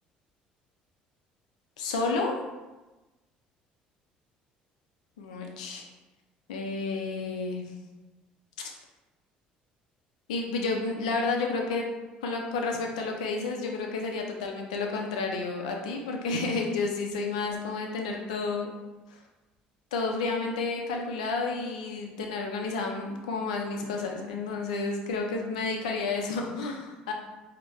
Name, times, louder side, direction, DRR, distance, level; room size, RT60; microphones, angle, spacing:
voice 1, 1.8-2.4 5.2-5.8 6.5-7.7 8.6-8.7 10.3-11.9 12.2-18.7 19.1-19.2 19.9-27.1, left 3 dB, 85° left, 2 dB, 0.5 m, -31 dB
4.6 x 2.1 x 3.1 m, 1.1 s
hypercardioid pair, 65°, 4 cm